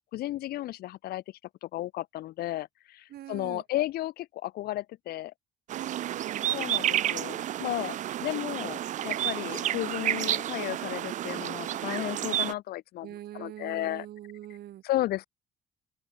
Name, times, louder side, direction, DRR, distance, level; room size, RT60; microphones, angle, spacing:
voice 1, 0.1-1.2 1.6-5.3 6.5-13.1 13.3-14.1 14.8-15.3, left 15 dB, 65° left, 0.6 m, -33 dB
voice 2, 3.1-3.6 5.7-6.5 13.0-14.8, right 13 dB, 65° right, 3.6 m, -42 dB
sound 1, 5.7-12.5, right 12 dB, 45° right, 0.4 m, -31 dB
open air
cardioid pair, 110°, 17 cm